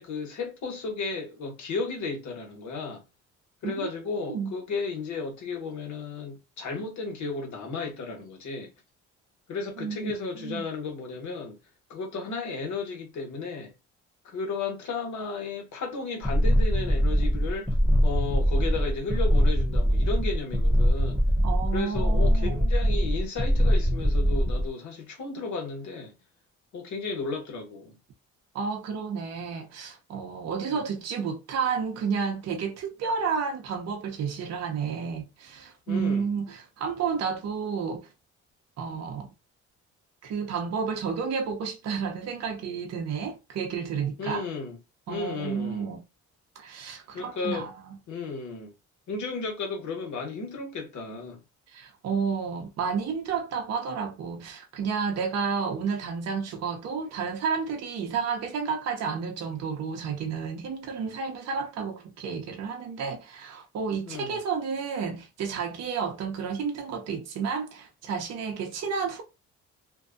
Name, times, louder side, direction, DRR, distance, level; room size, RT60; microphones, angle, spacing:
voice 1, 0.0-3.0 3.6-8.7 9.5-11.6 11.9-13.7 14.2-17.7 18.0-21.2 21.7-26.1 26.7-28.0 30.6-30.8 35.9-36.3 44.2-44.8 45.1-45.9 47.1-47.7 48.1-48.7 49.1-51.4 64.0-64.4, left 4 dB, 70° left, 1.3 m, -34 dB
voice 2, 9.8-10.7 21.4-22.6 28.5-38.1 38.8-39.3 40.2-44.4 45.1-46.0 46.6-47.7 51.7-69.2, right 6 dB, 60° right, 0.7 m, -31 dB
sound 1, 16.2-24.7, equal, 5° left, 0.8 m, -23 dB
2.6 x 2.2 x 2.5 m
cardioid pair, 90°, 30 cm